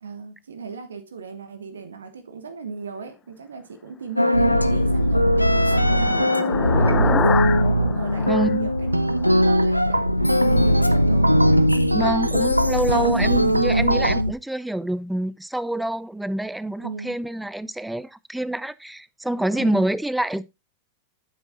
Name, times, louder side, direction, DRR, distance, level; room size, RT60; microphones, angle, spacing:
voice 1, 0.0-11.4 12.9-13.3 16.8-17.2 19.6-19.9, right 5 dB, 70° right, 1.2 m, -37 dB
sound 1, 4.2-14.3, equal, 90° left, 0.6 m, -20 dB
sound 2, 4.8-9.4, left 7 dB, 25° left, 0.8 m, -29 dB
voice 2, 8.3-8.7 11.9-20.4, right 1 dB, 5° right, 0.5 m, -26 dB
sound 3, 8.9-14.2, right 1 dB, 85° right, 0.5 m, -25 dB
10.0 x 8.1 x 2.6 m
figure-of-eight pair, 90°, 0 cm